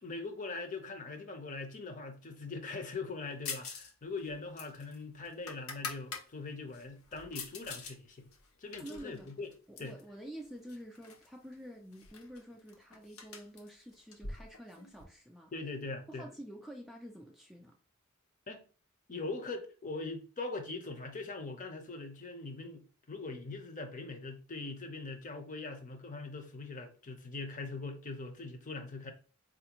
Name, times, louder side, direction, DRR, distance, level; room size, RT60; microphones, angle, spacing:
voice 1, 0.0-8.3 8.6-9.5 9.8-10.0 15.5-16.3 18.5-18.6 19.1-29.1, left 3 dB, 40° left, 0.6 m, -41 dB
sound 1, 3.5-3.9 4.2-6.3 6.7-8.0 8.3-10.0 10.7-11.3 11.5-11.6 11.9-15.0, left 5 dB, 85° left, 0.7 m, -44 dB
voice 2, 8.8-9.3 9.7-15.5 16.1-17.8, equal, ahead, 0.3 m, -48 dB
4.2 x 2.5 x 2.9 m
head